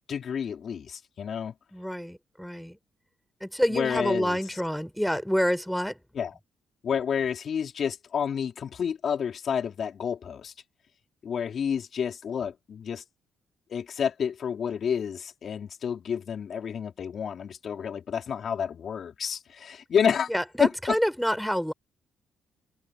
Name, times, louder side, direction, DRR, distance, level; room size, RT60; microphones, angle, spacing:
voice 1, 0.1-1.5 3.7-4.4 6.2-6.3 6.8-10.5 11.2-13.0 13.7-20.3 20.6-21.0, left 7 dB, 55° left, 3.7 m, -29 dB
voice 2, 1.7-2.8 3.4-6.0 20.3-21.7, equal, ahead, 5.2 m, -27 dB
cardioid pair, 90°, 0 cm